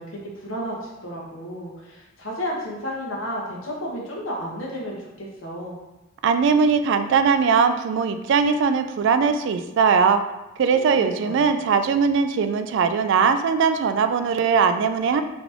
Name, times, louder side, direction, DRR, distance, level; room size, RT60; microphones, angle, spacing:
voice 1, 0.0-5.8 10.7-11.4, equal, 80° left, -3 dB, 1.1 m, -32 dB
voice 2, 6.2-10.2 10.6-15.2, right 5 dB, 65° right, 9 dB, 0.3 m, -20 dB
4.0 x 2.9 x 3.5 m, 0.99 s
head